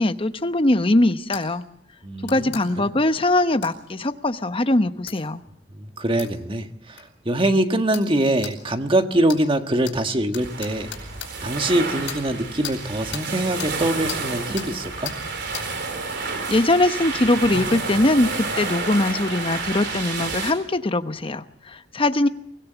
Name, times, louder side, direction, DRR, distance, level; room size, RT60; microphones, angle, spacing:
voice 1, 0.0-1.6 2.2-5.4 16.5-22.3, left 2 dB, 30° left, 10 dB, 1.0 m, -21 dB
sound 1, 1.3-1.4 2.2-2.6 3.6-3.7 5.1-5.2 6.2-6.3 7.0-7.1 7.9-8.1 8.4-8.5 9.3-9.4 9.8-10.0 10.3-11.3 12.1-12.2 12.6-12.8 13.1-13.3 13.6-13.7 14.1-14.2 14.6-14.7 15.0-15.2 15.5-15.7, left 9 dB, 90° left, 5.0 m, -34 dB
voice 2, 2.0-2.9 5.8-10.9 11.4-15.1, right 1 dB, 30° right, 6 dB, 1.6 m, -23 dB
sound 2, 10.4-20.5, right 4 dB, 65° right, 4.2 m, -30 dB
24.5 x 16.5 x 8.1 m, 0.72 s
head